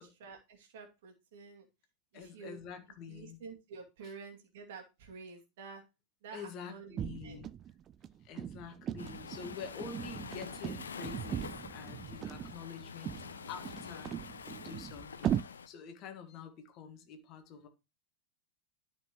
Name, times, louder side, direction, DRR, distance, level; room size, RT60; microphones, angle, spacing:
voice 1, 0.2-1.7 2.1-2.6 3.1-5.8 6.2-7.4, right 5 dB, 55° right, 2.3 m, -49 dB
voice 2, 2.1-3.4 4.0-4.1 6.3-7.5 8.2-15.4 15.7-17.7, left 6 dB, 40° left, 1.4 m, -47 dB
sound 1, 7.0-15.4, right 10 dB, 30° right, 0.3 m, -39 dB
Waves surf, 9.0-15.7, left 6 dB, 70° left, 0.6 m, -47 dB
12.5 x 5.0 x 3.0 m
figure-of-eight pair, 90°, 0 cm